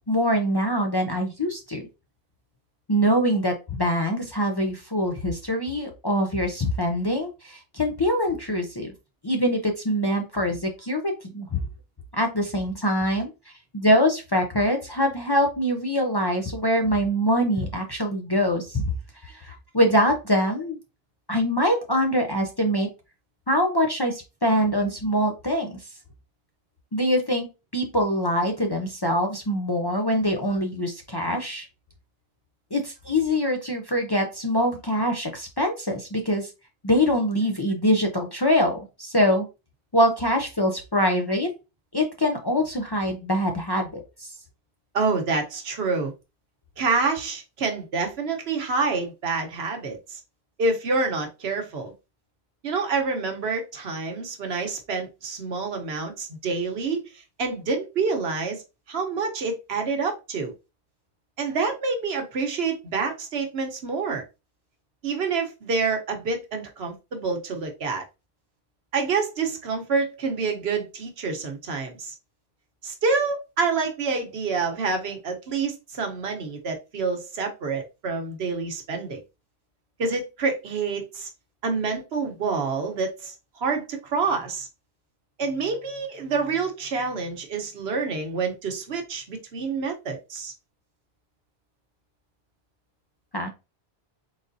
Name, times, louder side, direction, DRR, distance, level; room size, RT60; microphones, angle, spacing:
voice 1, 0.1-1.8 2.9-8.9 9.2-11.6 12.1-13.3 13.7-18.9 19.2-20.8 21.3-22.9 23.5-25.7 26.9-31.7 32.7-36.5 36.8-39.5 39.9-41.5 41.9-44.3 93.3-93.5, equal, 30° left, 0.5 m, -24 dB
voice 2, 44.9-46.1 46.8-50.2 50.6-51.9 52.6-58.6 58.9-60.5 61.4-64.2 65.0-68.0 68.9-72.1 72.8-79.2 80.0-81.3 81.6-84.7 85.4-90.5, right 4 dB, 75° right, 1.2 m, -27 dB
4.0 x 3.7 x 2.6 m
omnidirectional pair, 1.1 m